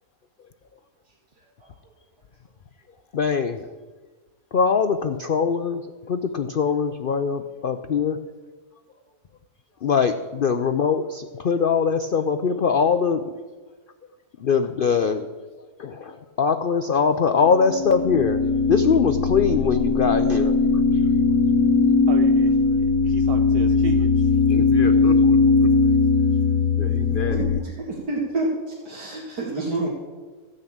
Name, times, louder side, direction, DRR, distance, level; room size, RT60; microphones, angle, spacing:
voice 1, 3.1-3.7 4.5-5.8 6.1-8.2 9.8-13.2 14.4-15.3 15.8-18.4 18.7-20.5, left 6 dB, 75° left, 9 dB, 0.5 m, -22 dB
sound 1, 17.5-27.6, left 4 dB, 60° left, 1.3 m, -19 dB
voice 2, 22.1-24.1, right 6 dB, 55° right, 6 dB, 0.7 m, -34 dB
voice 3, 24.5-26.0 26.8-27.6, left 3 dB, 40° left, 7 dB, 0.8 m, -31 dB
voice 4, 27.3-28.5 28.8-29.9, right 2 dB, 80° right, -5 dB, 2.7 m, -28 dB
15.0 x 6.5 x 8.6 m, 1.4 s
omnidirectional pair, 1.7 m